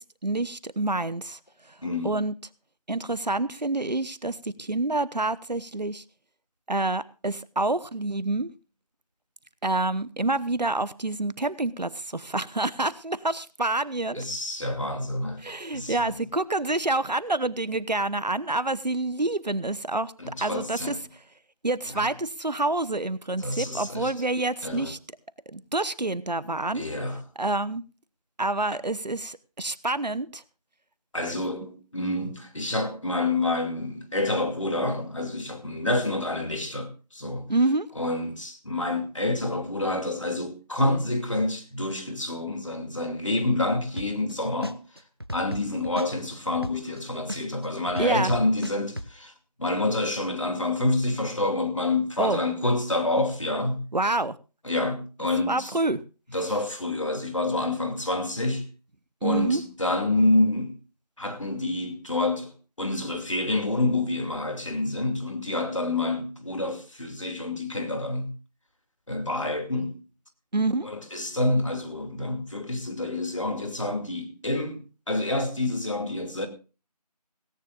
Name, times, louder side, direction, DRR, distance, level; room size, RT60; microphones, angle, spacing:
voice 1, 0.2-1.4 2.0-2.3 2.9-6.0 6.7-8.5 9.6-14.2 15.4-21.0 21.6-25.0 25.5-26.8 27.4-27.8 28.4-30.4 31.3-31.4 37.5-37.9 48.0-48.3 52.2-52.4 53.9-54.3 55.5-56.0 59.2-59.6 70.5-70.9, right 2 dB, 80° right, 1.0 m, -27 dB
voice 2, 1.8-2.2 14.1-15.4 15.7-16.2 20.2-21.0 21.9-22.1 23.4-24.1 24.6-24.9 26.7-27.2 31.1-37.5 38.0-44.8 45.3-49.3 49.6-53.8 54.6-55.7 56.3-58.7 59.2-60.7 61.2-68.3 69.1-70.0 70.8-74.8 75.1-76.5, left 2 dB, 50° left, 2.6 m, -28 dB
sound 1, 44.0-44.3 44.6-47.0 47.3-49.1, equal, 35° right, 0.6 m, -35 dB
17.0 x 17.0 x 2.5 m
figure-of-eight pair, 175°, 21 cm